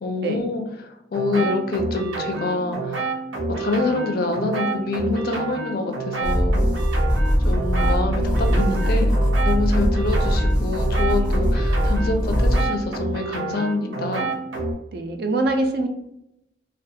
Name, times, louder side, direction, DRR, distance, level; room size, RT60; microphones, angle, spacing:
voice 1, 0.0-3.1 3.6-6.6 7.4-14.3, left 3 dB, 50° left, 4 dB, 0.4 m, -26 dB
sound 1, 1.1-14.7, right 3 dB, 90° right, 0.7 m, -29 dB
sound 2, 6.2-12.7, equal, 5° right, 0.6 m, -21 dB
voice 2, 7.8-8.1 8.5-9.1 14.9-15.9, right 2 dB, 50° right, 4 dB, 0.3 m, -26 dB
2.3 x 2.3 x 2.7 m, 0.83 s
head